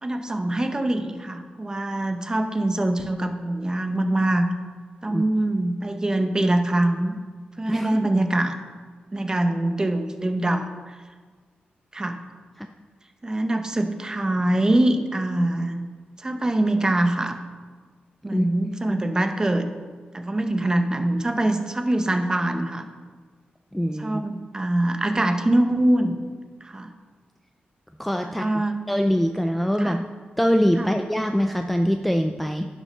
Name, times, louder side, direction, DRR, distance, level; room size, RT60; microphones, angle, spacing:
voice 1, 0.0-4.5 5.0-7.2 7.6-8.6 9.1-11.0 11.9-12.2 13.2-15.8 16.2-17.4 18.2-19.7 20.1-22.9 24.0-26.2 26.6-26.9 28.2-28.8 29.8-30.0 30.8-30.9, right 1 dB, 20° right, 7 dB, 0.8 m, -23 dB
voice 2, 7.7-8.1 12.6-12.7 18.3-18.5 23.7-24.2 28.0-28.5 28.9-30.0 30.4-32.7, equal, ahead, 5 dB, 0.4 m, -23 dB
10.5 x 6.1 x 5.5 m, 1.5 s
wide cardioid pair, 130°, 3 cm